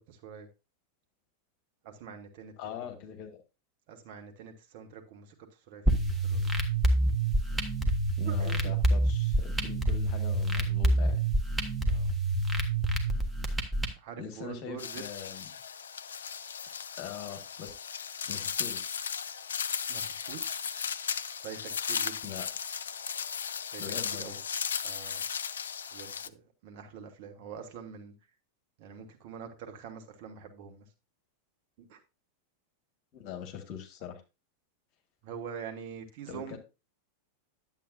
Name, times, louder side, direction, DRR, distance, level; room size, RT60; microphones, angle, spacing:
voice 1, 0.1-0.5 1.8-2.5 2.8-3.0 3.9-5.3 5.7-6.4 8.2-8.7 11.8-12.1 14.0-15.0 19.9-20.7 21.4-22.3 23.7-23.8 24.2-24.4 24.8-25.2 25.9-28.1 28.8-30.8 31.8-32.0 35.2-36.6, right 7 dB, 50° right, 1.4 m, -45 dB
voice 2, 2.6-3.4 7.8-11.2 14.2-15.5 17.0-17.8 18.2-19.0 22.2-22.5 23.8-24.4 33.1-34.2 36.3-36.6, left 9 dB, 40° left, 1.8 m, -42 dB
sound 1, 5.9-13.9, right 1 dB, 5° right, 1.3 m, -27 dB
sound 2, 14.8-26.3, left 7 dB, 65° left, 0.3 m, -36 dB
10.5 x 7.8 x 2.6 m
figure-of-eight pair, 90°, 0 cm